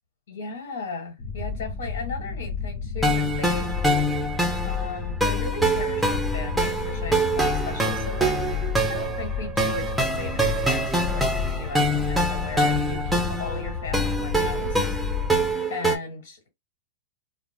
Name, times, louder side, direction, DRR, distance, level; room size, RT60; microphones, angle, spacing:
voice 1, 0.3-3.7 4.6-15.0 15.7-16.5, left 4 dB, 80° left, 1.2 m, -36 dB
sound 1, 1.2-15.5, left 5 dB, 60° left, 0.9 m, -31 dB
sound 2, 3.0-16.0, right 1 dB, ahead, 0.6 m, -25 dB
2.3 x 2.0 x 3.3 m
supercardioid pair, 140°, 0 cm